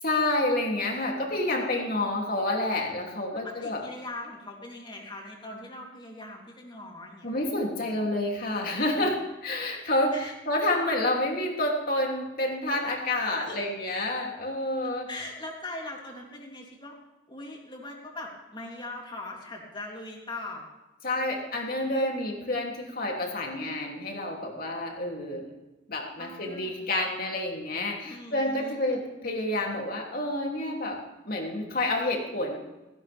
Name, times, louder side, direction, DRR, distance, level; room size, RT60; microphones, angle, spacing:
voice 1, 0.0-3.8 7.2-15.1 21.0-25.5 25.9-31.0 31.2-32.6, left 1 dB, 50° left, 0 dB, 3.1 m, -29 dB
voice 2, 3.3-7.4 10.1-10.3 13.3-13.6 15.1-17.0 17.3-20.7 21.2-21.4 26.2-26.8 28.0-28.8, left 2 dB, 25° left, -1 dB, 3.3 m, -41 dB
16.5 x 16.5 x 3.6 m, 1.1 s
head